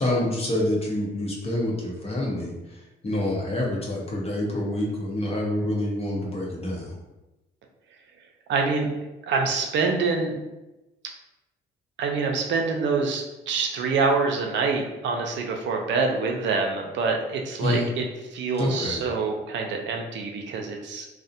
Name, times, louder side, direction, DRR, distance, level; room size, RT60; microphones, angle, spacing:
voice 1, 0.0-2.5 3.0-6.9 17.6-17.9 18.6-19.0, left 1 dB, 30° left, -3 dB, 0.7 m, -27 dB
voice 2, 8.5-8.9 9.3-10.3 12.0-18.0 18.3-21.1, right 4 dB, 65° right, 2 dB, 0.4 m, -26 dB
2.4 x 2.0 x 2.6 m, 1.0 s
cardioid pair, 90°, 20 cm